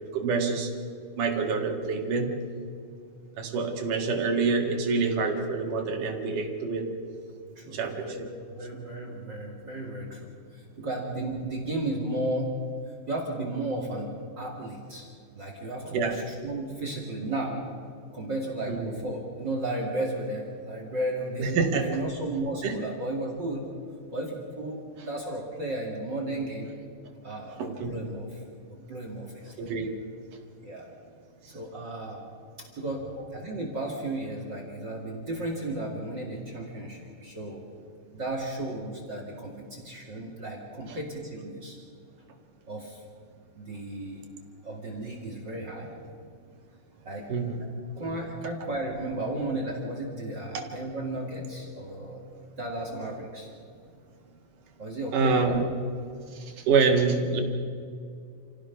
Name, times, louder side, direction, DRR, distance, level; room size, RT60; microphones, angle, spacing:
voice 1, 0.1-0.7 1.2-2.3 3.4-6.9 7.7-8.3 15.9-16.2 18.7-19.0 21.4-21.9 22.6-22.8 27.6-28.0 29.6-29.9 47.3-47.6 48.0-48.2 50.5-50.6 55.1-55.7 56.3-57.4, right 4 dB, 80° right, 3 dB, 3.5 m, -26 dB
voice 2, 7.6-12.6 13.1-15.1 15.3-17.7 18.1-23.7 24.1-26.7 27.2-28.4 28.7-29.7 30.6-30.9 31.5-32.2 32.6-37.6 38.1-41.8 42.7-43.0 43.5-44.2 44.6-45.9 47.0-47.3 47.6-47.7 48.0-52.2 52.6-53.5 54.8-55.6, right 1 dB, 35° right, -1 dB, 2.7 m, -34 dB
28.0 x 16.5 x 5.8 m, 2.3 s
omnidirectional pair, 3.7 m